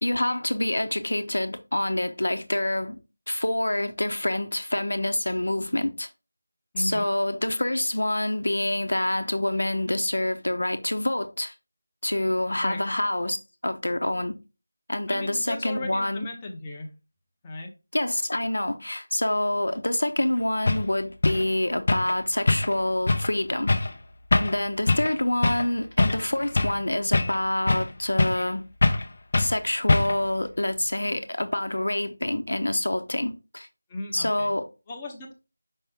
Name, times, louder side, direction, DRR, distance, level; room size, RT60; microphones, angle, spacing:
voice 1, 0.0-3.0 3.3-6.1 6.8-11.5 12.0-13.4 13.6-14.4 14.9-16.3 17.9-23.7 24.3-28.6 29.4-33.7 34.1-34.7, left 1 dB, 80° left, 0.9 m, -26 dB
voice 2, 6.7-7.0 12.6-12.8 15.1-16.9 17.4-17.7 33.9-34.5 34.9-35.3, left 2 dB, 10° left, 0.8 m, -36 dB
sound 1, 20.2-20.3 20.7-20.9 21.2-21.5 21.9-22.2 22.5-22.8 23.1-23.3 23.7-23.9 24.3-24.6 24.9-25.1 25.4-25.7 26.0-26.8 27.1-27.9 28.2-28.5 28.8-29.1 29.3-29.5 29.9-30.3, left 2 dB, 40° left, 0.7 m, -23 dB
5.7 x 5.4 x 3.6 m
figure-of-eight pair, 175°, 0 cm